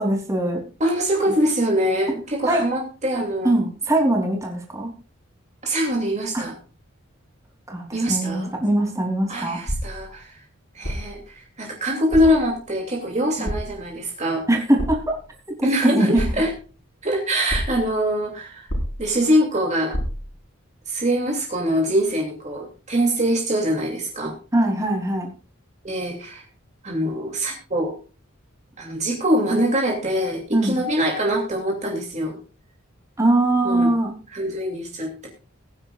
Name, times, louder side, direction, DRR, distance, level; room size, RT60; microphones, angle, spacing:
voice 1, 0.0-0.6 2.4-2.6 3.4-4.9 6.3-6.4 7.7-9.6 13.4-13.5 14.5-15.2 15.6-16.1 24.5-25.3 30.5-30.8 33.2-34.1, right 1 dB, 15° right, 1 dB, 3.3 m, -21 dB
voice 2, 0.8-3.5 5.6-6.5 7.9-8.5 9.3-10.4 10.7-14.4 15.6-16.5 17.0-18.7 19.0-20.0 20.9-24.3 25.8-26.4 26.8-28.0 28.8-32.4 33.6-33.9 34.3-35.3, equal, 35° right, 0 dB, 2.8 m, -23 dB
sound 1, 9.7-10.1 10.8-11.2 12.1-12.5 13.4-13.9 14.8-15.2 16.2-16.7 17.5-17.9 18.7-19.2 19.9-20.4, equal, 65° left, 4.8 m, -28 dB
21.0 x 10.0 x 2.5 m, 0.34 s
head